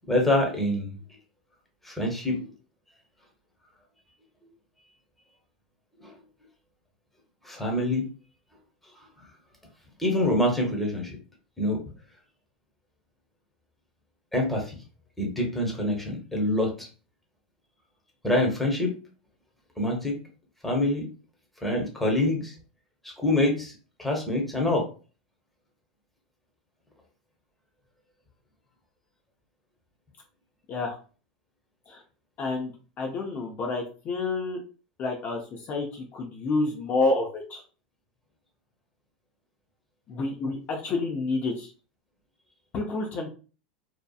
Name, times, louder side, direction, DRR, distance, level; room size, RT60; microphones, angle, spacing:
voice 1, 0.1-1.0 1.8-2.4 6.0-6.1 7.4-8.1 10.0-11.2 11.6-11.8 14.3-14.8 15.2-16.9 18.2-18.9 19.8-20.2 20.6-21.1 21.6-22.5 23.0-23.7 24.0-24.8, left 1 dB, 5° left, 0 dB, 0.9 m, -25 dB
voice 2, 32.4-34.6 35.0-37.6 40.1-41.7 42.7-43.3, left 3 dB, 40° left, 1 dB, 0.6 m, -29 dB
2.8 x 2.3 x 2.3 m, 0.37 s
hypercardioid pair, 105°, 5 cm